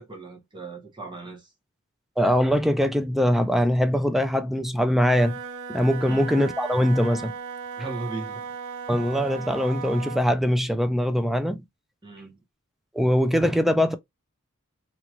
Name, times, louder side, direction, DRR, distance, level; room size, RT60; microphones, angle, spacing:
voice 1, 0.0-1.5 6.0-6.3 7.8-8.4 12.0-12.4, right 3 dB, 20° right, 1.2 m, -37 dB
voice 2, 2.2-5.4 5.7-7.3 8.9-11.6 12.9-14.0, equal, ahead, 0.3 m, -22 dB
Wind instrument woodwind instrument, 4.9-10.3, right 5 dB, 70° right, 0.6 m, -37 dB
2.9 x 2.9 x 2.4 m
head